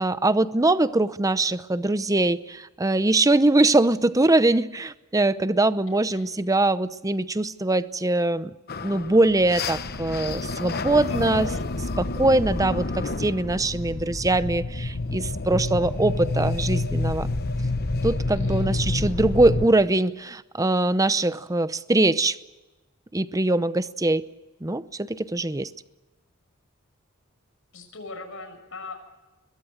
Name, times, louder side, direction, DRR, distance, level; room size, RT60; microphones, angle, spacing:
voice 1, 0.0-8.5 8.8-11.5 12.0-17.3 18.0-22.4 23.1-24.3 24.6-25.7, right 2 dB, 15° right, 14 dB, 0.7 m, -22 dB
voice 2, 5.9-6.3 11.1-11.7 18.4-18.9 27.7-28.9, left 3 dB, 65° left, 5 dB, 6.6 m, -39 dB
sound 1, 8.7-19.7, left 2 dB, 45° left, 1.0 m, -28 dB
23.0 x 21.5 x 7.7 m, 1.1 s
head